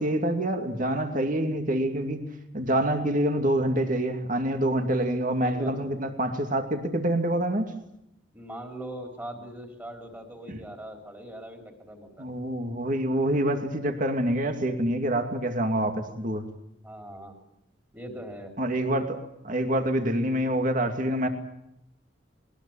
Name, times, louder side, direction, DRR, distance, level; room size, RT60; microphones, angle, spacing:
voice 1, 0.0-2.3 2.5-7.7 10.5-10.6 12.2-16.4 18.6-19.2 19.4-21.3, right 1 dB, 40° right, 6 dB, 2.5 m, -26 dB
voice 2, 5.4-5.9 8.3-12.3 16.8-17.4 17.9-18.5, right 1 dB, 10° right, 4 dB, 3.6 m, -41 dB
21.0 x 20.0 x 8.9 m, 0.80 s
head